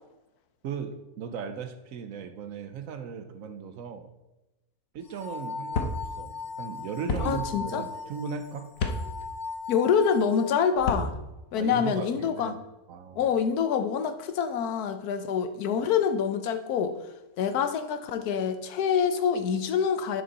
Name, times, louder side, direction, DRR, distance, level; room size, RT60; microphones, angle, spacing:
voice 1, 0.6-4.1 4.9-8.7 11.6-12.6 12.9-13.3, right 6 dB, 70° right, 9 dB, 1.1 m, -37 dB
sound 1, 5.0-10.9, left 5 dB, 45° left, 1.8 m, -39 dB
sound 2, 5.7-5.9 7.1-7.2 8.8-9.0 10.7-11.1, left 4 dB, 65° left, 1.3 m, -28 dB
voice 2, 7.2-7.8 9.7-11.2 11.5-12.6 13.2-16.9 17.4-20.2, left 7 dB, 85° left, 9 dB, 1.2 m, -26 dB
9.4 x 6.1 x 4.1 m, 0.98 s
omnidirectional pair, 1.6 m